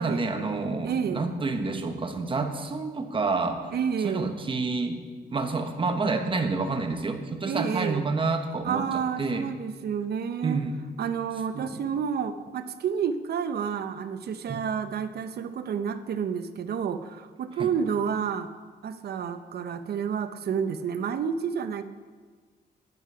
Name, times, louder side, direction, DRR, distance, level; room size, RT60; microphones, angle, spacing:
voice 1, 0.0-3.7 4.0-5.0 5.3-9.5 10.4-10.8 11.5-11.8 14.5-14.6 17.6-17.7, right 3 dB, 30° right, 5 dB, 1.1 m, -29 dB
voice 2, 0.8-1.2 3.7-4.3 7.5-8.1 8.6-10.6 11.0-18.5 18.8-21.8, right 7 dB, 65° right, 10 dB, 0.7 m, -30 dB
11.5 x 9.5 x 4.8 m, 1.5 s
cardioid pair, 125°, 18 cm